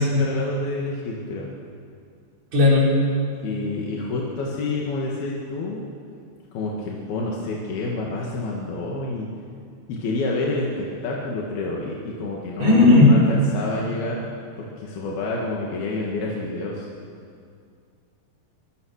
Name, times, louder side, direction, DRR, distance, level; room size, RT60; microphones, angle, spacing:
voice 1, 0.0-1.5 3.4-5.8 6.5-9.3 9.9-14.2 14.6-16.9, left 2 dB, 60° left, -3 dB, 3.5 m, -28 dB
voice 2, 2.5-3.0 12.6-13.1, left 3 dB, 35° right, -4 dB, 5.6 m, -15 dB
24.5 x 21.5 x 6.6 m, 2.3 s
omnidirectional pair, 5.7 m